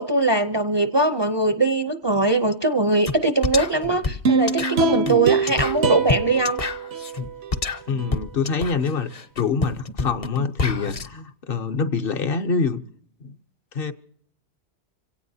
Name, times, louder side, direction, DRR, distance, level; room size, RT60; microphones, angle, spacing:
voice 1, 0.0-6.6, right 2 dB, 30° right, 0.5 m, -21 dB
sound 1, 3.1-3.2 3.4-11.1, left 3 dB, 35° left, 0.8 m, -28 dB
sound 2, 4.2-7.5 8.0-8.1, right 4 dB, 70° right, 1.0 m, -23 dB
voice 2, 7.9-12.8 13.2-13.4 13.7-13.9, left 5 dB, 60° left, 1.0 m, -25 dB
26.5 x 17.0 x 2.7 m
omnidirectional pair, 1.1 m